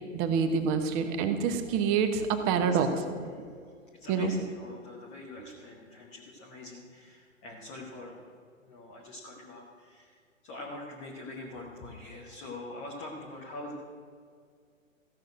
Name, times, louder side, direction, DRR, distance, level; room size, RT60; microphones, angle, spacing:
voice 1, 0.1-2.9 4.1-4.3, right 6 dB, 20° right, 8 dB, 0.9 m, -27 dB
voice 2, 3.9-8.3 8.6-10.2 10.4-13.8, left 2 dB, 5° left, -3 dB, 0.4 m, -44 dB
14.5 x 6.4 x 7.6 m, 2.1 s
figure-of-eight pair, 120°, 40 cm